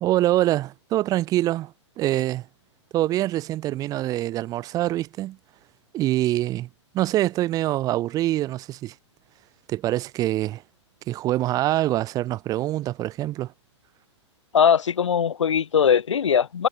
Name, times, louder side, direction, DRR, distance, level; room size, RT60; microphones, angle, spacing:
voice 1, 0.0-2.5 2.9-5.4 5.9-6.7 6.9-8.9 9.7-10.6 11.1-13.5, right 15 dB, 25° right, 0.7 m, -25 dB
voice 2, 14.5-16.7, left 7 dB, 80° left, 0.6 m, -20 dB
hypercardioid pair, 120°, 15 cm